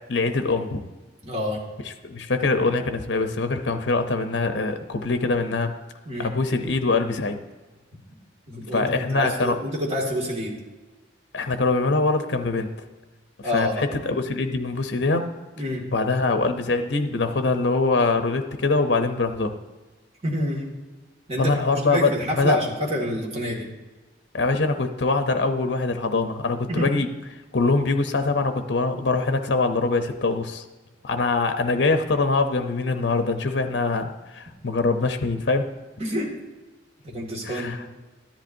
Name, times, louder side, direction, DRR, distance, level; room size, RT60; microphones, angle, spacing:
voice 1, 0.1-0.9 2.0-5.7 6.2-7.4 8.7-9.6 11.3-12.7 13.4-15.3 15.9-19.5 21.4-22.6 24.3-27.1 27.5-30.6 31.0-35.7 37.4-37.8, left 3 dB, 65° left, 7 dB, 0.7 m, -23 dB
voice 2, 1.2-1.6 6.1-6.3 8.5-10.5 13.4-13.7 15.6-15.8 20.2-20.7 21.3-21.5 21.9-23.7 26.7-26.9 36.0-36.3 37.0-37.8, equal, 35° right, -2 dB, 2.0 m, -27 dB
13.0 x 10.5 x 2.7 m, 1.2 s
head